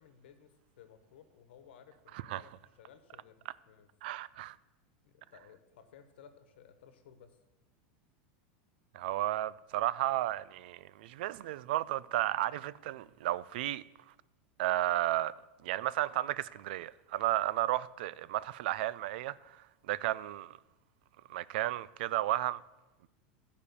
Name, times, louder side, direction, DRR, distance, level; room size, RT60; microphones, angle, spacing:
voice 1, 0.0-3.9 5.0-7.4 8.9-9.1, left 8 dB, 90° left, 1.2 m, -58 dB
voice 2, 4.0-4.6 8.9-13.8 14.6-15.3 15.6-20.6 21.3-22.6, right 15 dB, 65° right, 0.3 m, -33 dB
13.5 x 5.0 x 6.8 m
supercardioid pair, 165°, 6 cm